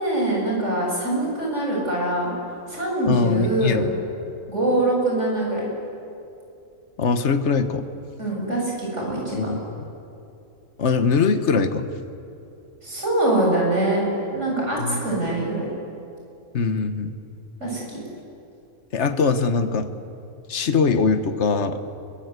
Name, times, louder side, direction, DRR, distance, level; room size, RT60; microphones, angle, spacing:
voice 1, 0.0-2.3 2.7-3.9 4.5-5.7 8.2-9.5 12.8-14.0 14.3-15.6 17.6-18.0, right 1 dB, 65° right, -2 dB, 8.5 m, -23 dB
voice 2, 3.1-3.9 7.0-7.8 9.3-9.8 10.8-11.9 14.8-15.0 16.5-17.2 18.9-19.9 20.5-21.8, left 4 dB, 60° left, 9 dB, 1.6 m, -22 dB
28.5 x 24.0 x 8.2 m, 2.6 s
omnidirectional pair, 1.3 m